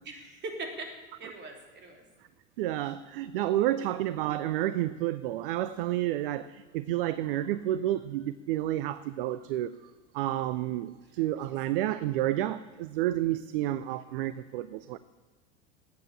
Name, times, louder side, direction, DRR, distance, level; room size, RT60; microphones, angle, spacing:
voice 1, 0.0-0.9 1.2-2.0 3.3-3.9 11.0-11.2, right 2 dB, 30° right, 2 dB, 3.4 m, -42 dB
voice 2, 2.6-9.8 10.1-15.0, right 13 dB, 50° right, 15 dB, 0.6 m, -30 dB
15.0 x 9.3 x 9.9 m, 1.3 s
figure-of-eight pair, 85°, 36 cm